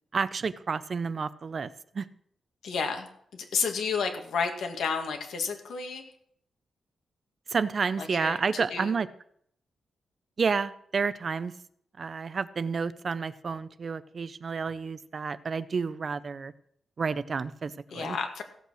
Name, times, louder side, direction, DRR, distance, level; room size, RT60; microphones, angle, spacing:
voice 1, 0.1-1.7 1.9-2.1 7.5-9.1 10.4-11.5 12.0-16.5 17.0-18.2, right 5 dB, 35° right, 15 dB, 0.5 m, -30 dB
voice 2, 2.6-6.1 8.0-8.9 17.9-18.4, left 5 dB, 90° left, 4 dB, 2.2 m, -31 dB
16.0 x 8.2 x 6.4 m, 0.67 s
wide cardioid pair, 165°, 0 cm